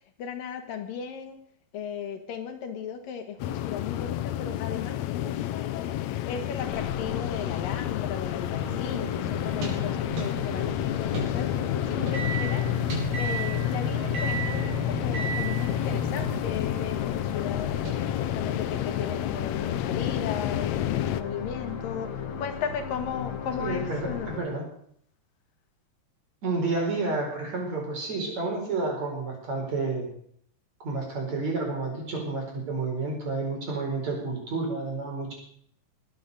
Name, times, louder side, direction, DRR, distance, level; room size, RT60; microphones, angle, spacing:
voice 1, 0.2-1.4 1.7-5.9 6.3-11.5 11.9-12.8 13.2-17.7 18.2-24.4, left 7 dB, 75° left, 6 dB, 3.2 m, -36 dB
sound 1, 3.4-21.2, left 12 dB, 90° left, 1.5 m, -31 dB
sound 2, 6.6-24.4, left 7 dB, 55° left, 2.7 m, -36 dB
sound 3, 8.6-16.8 17.8-18.0, left 2 dB, 65° right, 6.1 m, -32 dB
voice 2, 23.6-24.7 26.4-30.1 30.8-35.3, right 3 dB, 50° right, 1 dB, 5.9 m, -30 dB
21.0 x 9.2 x 6.7 m, 0.64 s
omnidirectional pair, 4.1 m